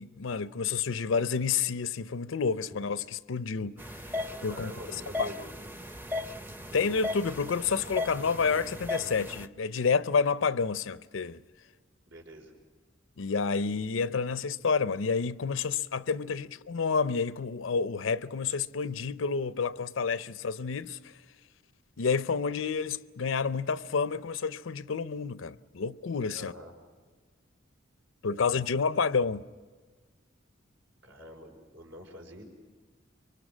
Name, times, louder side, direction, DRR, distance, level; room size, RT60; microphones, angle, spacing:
voice 1, 0.0-4.1 4.4-4.7 5.2-5.3 6.7-11.4 13.2-21.1 22.0-26.5 28.2-29.4, left 5 dB, 85° left, 0.6 m, -29 dB
sound 1, 3.8-9.5, left 2 dB, 10° right, 0.6 m, -37 dB
voice 2, 4.4-5.5 12.0-12.5 26.3-26.7 31.0-32.5, equal, 80° right, 5.0 m, -45 dB
24.5 x 24.0 x 6.2 m
head